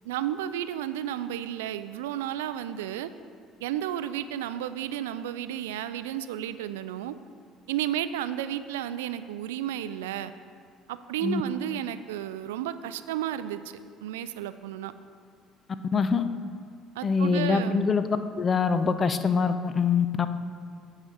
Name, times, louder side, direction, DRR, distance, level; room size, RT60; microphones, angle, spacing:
voice 1, 0.1-3.1 3.6-7.1 7.7-10.3 10.9-13.6 14.0-14.9 17.0-17.8, right 11 dB, 80° right, 13 dB, 0.3 m, -32 dB
voice 2, 15.9-16.2 17.0-18.0 18.4-20.3, left 5 dB, 40° left, 10 dB, 0.6 m, -24 dB
9.8 x 4.9 x 5.6 m, 2.1 s
hypercardioid pair, 55°, 0 cm